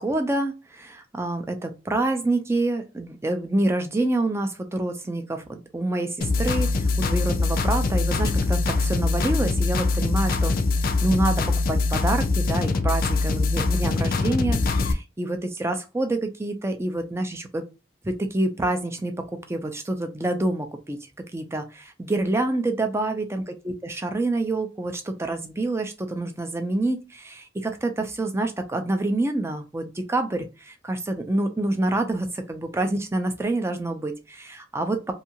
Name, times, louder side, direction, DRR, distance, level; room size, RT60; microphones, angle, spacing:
voice 1, 0.0-10.5 11.0-17.6 18.0-19.1 19.5-21.0 21.3-35.1, right 2 dB, 15° right, 6 dB, 0.4 m, -27 dB
sound 1, 6.2-14.9, left 3 dB, 50° left, 0.4 m, -23 dB
2.7 x 2.4 x 2.8 m, 0.29 s
head